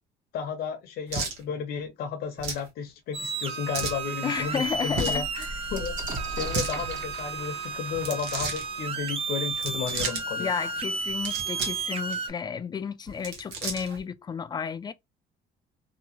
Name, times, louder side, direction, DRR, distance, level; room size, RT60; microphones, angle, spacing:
voice 1, 0.3-5.2 5.7-6.0 6.3-10.5, left 7 dB, 70° left, 0.7 m, -33 dB
sound 1, 1.1-1.4 2.4-2.7 3.7-4.0 4.9-5.3 6.3-6.7 7.9-8.6 9.5-10.2 11.1-11.8 12.1-12.2 13.1-14.0, right 4 dB, 85° right, 1.1 m, -33 dB
sound 2, 3.1-12.3, right 4 dB, 35° right, 0.6 m, -33 dB
sound 3, 3.4-3.5 3.9-4.0 4.3-9.8 10.8-10.9 11.1-11.7, right 1 dB, 50° right, 1.3 m, -40 dB
voice 2, 4.2-5.5 10.4-14.9, left 6 dB, 25° left, 0.4 m, -32 dB
2.9 x 2.2 x 2.7 m
cardioid pair, 110°, 17 cm